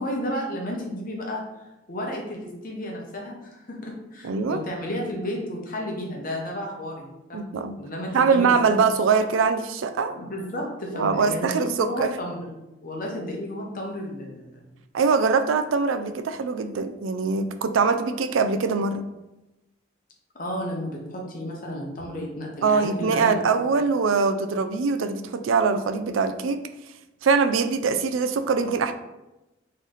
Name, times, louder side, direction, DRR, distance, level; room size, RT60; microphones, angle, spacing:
voice 1, 0.0-1.4 1.9-7.5 7.8-8.9 10.1-12.5 12.8-14.6 20.3-23.4, equal, 45° left, 0 dB, 1.0 m, -32 dB
voice 2, 4.2-4.6 7.3-7.8 8.1-10.1 10.9-12.1 14.9-19.0 22.6-26.6 27.2-28.9, right 5 dB, 80° right, 9 dB, 0.4 m, -23 dB
4.0 x 3.2 x 3.9 m, 0.97 s
head